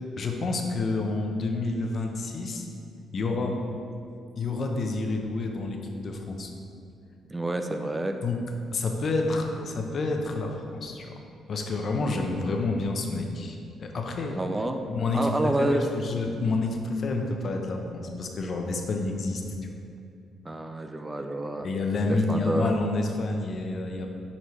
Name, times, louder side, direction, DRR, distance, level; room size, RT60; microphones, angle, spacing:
voice 1, 0.2-2.7 3.1-3.6 4.4-6.5 8.2-8.4 8.7-11.1 11.5-14.4 14.7-19.8 21.6-24.1, left 3 dB, 50° left, 2 dB, 0.8 m, -29 dB
voice 2, 7.3-8.2 12.1-12.2 14.3-14.8 15.1-15.8 20.4-21.7 22.3-22.7, right 2 dB, 15° right, 6 dB, 0.4 m, -28 dB
9.3 x 4.3 x 3.2 m, 2.4 s
cardioid pair, 90°, 0 cm